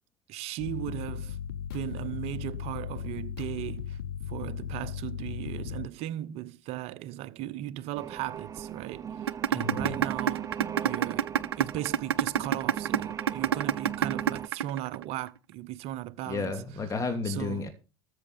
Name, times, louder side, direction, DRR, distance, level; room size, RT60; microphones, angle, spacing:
voice 1, 0.3-1.4 1.7-4.0 4.3-16.5 17.2-17.7, right 14 dB, 55° right, 0.9 m, -37 dB
sound 1, 0.6-5.9, left 9 dB, 70° left, 0.7 m, -37 dB
sound 2, 7.9-14.5, right 8 dB, 25° right, 0.8 m, -38 dB
sound 3, 9.3-15.3, right 9 dB, 80° right, 0.6 m, -25 dB
voice 2, 9.5-10.0 16.2-17.7, left 4 dB, 25° left, 2.8 m, -32 dB
13.5 x 6.5 x 7.1 m
hypercardioid pair, 75°, 13 cm